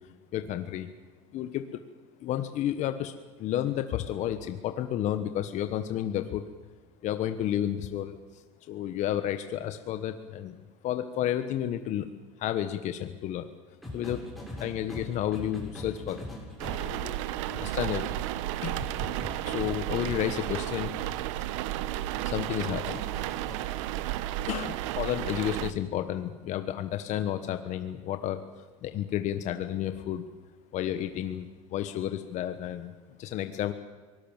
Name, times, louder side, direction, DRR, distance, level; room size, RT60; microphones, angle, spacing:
voice 1, 0.3-0.9 1.3-1.8 2.2-6.4 7.0-8.2 8.7-10.6 10.8-12.1 12.4-13.5 13.9-16.3 16.8-18.1 18.6-18.8 19.4-21.1 21.4-21.5 22.2-23.1 24.5-28.4 28.8-30.2 30.7-32.9 33.2-33.7, left 11 dB, 50° left, 9 dB, 1.2 m, -31 dB
sound 1, 13.8-17.1 18.7-20.2 22.6-23.6 25.6-25.8, left 1 dB, ahead, 7.0 m, -41 dB
sound 2, 16.6-25.7, right 14 dB, 80° right, 1.0 m, -33 dB
24.0 x 19.0 x 7.3 m, 1.3 s
supercardioid pair, 120°, 16 cm